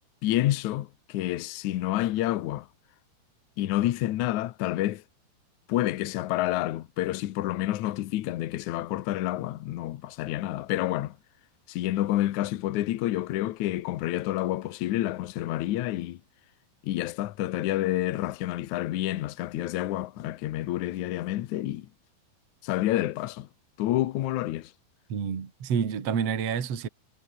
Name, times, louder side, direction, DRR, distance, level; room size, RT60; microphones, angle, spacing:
voice 1, 0.2-2.7 3.6-5.0 5.7-11.2 11.7-16.2 16.8-21.9 22.6-23.5 23.8-24.7, left 14 dB, 85° left, 1.7 m, -29 dB
voice 2, 25.1-26.9, right 7 dB, 40° right, 3.2 m, -28 dB
omnidirectional pair, 4.9 m